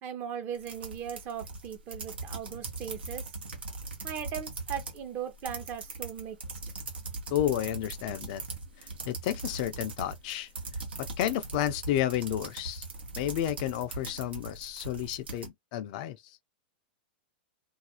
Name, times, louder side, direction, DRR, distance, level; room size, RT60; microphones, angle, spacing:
voice 1, 0.0-3.2 4.0-6.4, right 8 dB, 40° right, 0.7 m, -38 dB
sound 1, 0.5-5.0 5.3-15.5, right 3 dB, 85° right, 0.9 m, -40 dB
voice 2, 7.3-8.4 9.1-10.5 11.0-12.9 13.2-16.2, left 12 dB, 50° left, 0.4 m, -31 dB
2.4 x 2.3 x 2.8 m
hypercardioid pair, 110°, 5 cm